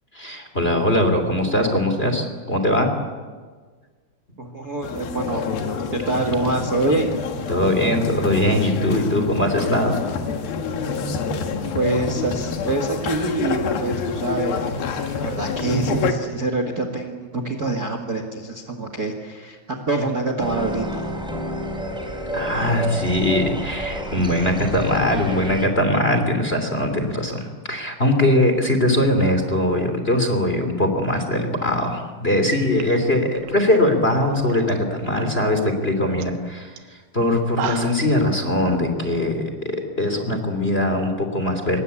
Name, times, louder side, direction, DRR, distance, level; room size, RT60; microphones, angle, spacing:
voice 1, 0.1-2.9 7.5-9.9 22.3-36.7 37.1-41.8, left 1 dB, 15° left, 6 dB, 2.2 m, -21 dB
voice 2, 4.4-5.4 5.9-7.1 11.7-21.1, right 2 dB, 60° right, 5 dB, 0.9 m, -25 dB
sound 1, 4.8-16.1, left 5 dB, 60° left, 3.3 m, -27 dB
sound 2, 20.4-25.7, equal, ahead, 3.5 m, -30 dB
sound 3, 32.4-32.5 32.7-34.7 35.0-35.5 35.8-35.9 36.2-36.4 36.8-36.9 37.3-38.1, right 7 dB, 75° right, 3.6 m, -34 dB
26.0 x 22.0 x 8.5 m, 1.5 s
omnidirectional pair, 5.1 m